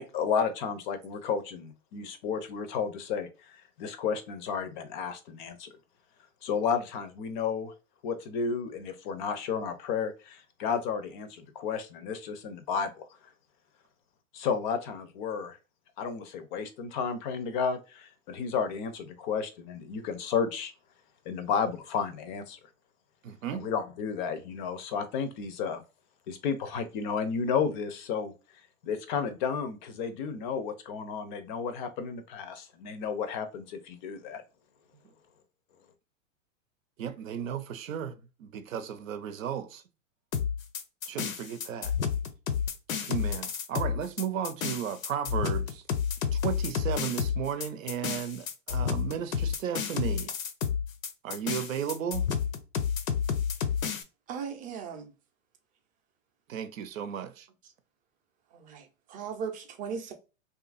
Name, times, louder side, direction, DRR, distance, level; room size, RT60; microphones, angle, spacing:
voice 1, 0.0-5.7 6.4-7.7 8.0-13.1 14.3-15.6 16.0-20.7 21.3-22.6 23.5-25.8 26.3-28.3 28.8-34.4, left 6 dB, 40° left, 0.5 m, -32 dB
voice 2, 23.2-23.7 37.0-39.8 41.1-41.9 43.0-45.8 46.3-50.3 51.2-52.3 56.5-57.5, right 8 dB, 75° right, 0.7 m, -34 dB
sound 1, 40.3-54.0, left 7 dB, 85° left, 0.6 m, -30 dB
voice 3, 54.3-55.1 58.5-58.8 59.1-60.1, right 6 dB, 20° right, 0.5 m, -37 dB
2.7 x 2.4 x 2.4 m
hypercardioid pair, 115°, 40 cm